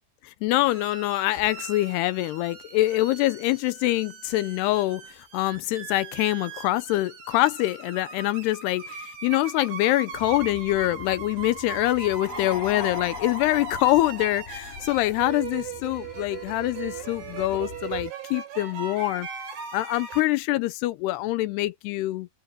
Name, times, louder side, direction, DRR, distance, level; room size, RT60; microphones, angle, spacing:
voice 1, 0.2-5.0 5.3-19.3 19.7-22.3, left 17 dB, 80° left, 2.5 m, -25 dB
sound 1, 0.6-20.2, right 6 dB, 80° right, 7.0 m, -39 dB
sound 2, 10.1-18.1, left 5 dB, 50° left, 5.1 m, -46 dB
sound 3, 12.1-15.1, left 6 dB, 35° left, 7.6 m, -37 dB
open air
omnidirectional pair, 5.2 m